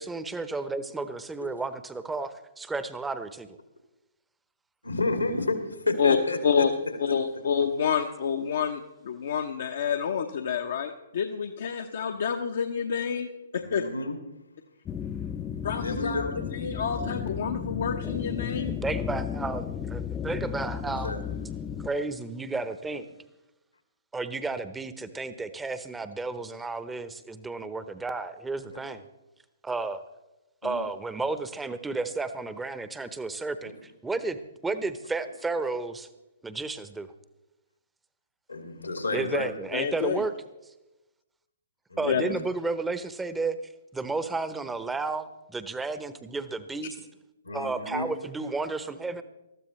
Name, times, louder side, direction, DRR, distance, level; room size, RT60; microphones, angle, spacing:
voice 1, 0.0-3.6 18.7-21.1 21.8-23.0 24.1-29.0 29.6-30.0 30.6-36.1 36.4-37.1 39.1-40.3 42.0-43.6 43.9-47.0 47.5-49.2, right 3 dB, 10° right, 12 dB, 0.8 m, -32 dB
voice 2, 4.8-7.0 13.6-14.2 15.8-16.4 20.8-21.2 28.7-28.8 38.5-39.5 41.9-42.4 47.4-48.0, left 2 dB, 85° left, 4 dB, 2.5 m, -31 dB
voice 3, 7.0-13.3 13.5-13.8 15.6-16.3 16.5-18.8 39.7-40.2 42.1-42.2, left 7 dB, 55° left, 5 dB, 0.8 m, -28 dB
sound 1, 14.9-21.9, left 8 dB, 20° left, 0.6 m, -34 dB
20.0 x 13.5 x 3.2 m, 0.99 s
figure-of-eight pair, 125°, 0 cm